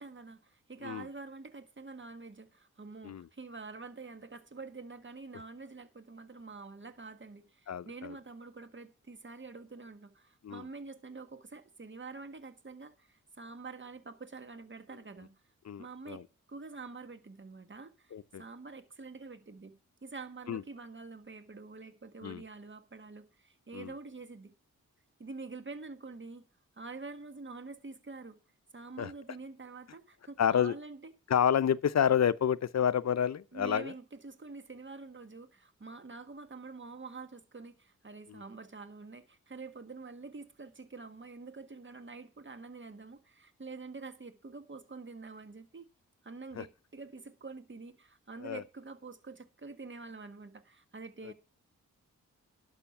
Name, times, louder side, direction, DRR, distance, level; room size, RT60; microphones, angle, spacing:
voice 1, 0.0-15.3 15.8-24.5 25.2-26.4 26.8-28.4 28.7-31.1 33.5-45.9 46.2-51.3, right 4 dB, 35° right, 1.6 m, -47 dB
voice 2, 7.7-8.2 10.4-10.6 15.7-16.2 18.1-18.4 20.5-20.6 22.2-22.4 23.7-23.9 29.0-29.1 30.4-30.7 31.3-33.9 38.3-38.4 46.6-46.7 48.4-48.6, left 8 dB, 55° left, 0.6 m, -29 dB
11.5 x 6.4 x 5.9 m
cardioid pair, 50°, 32 cm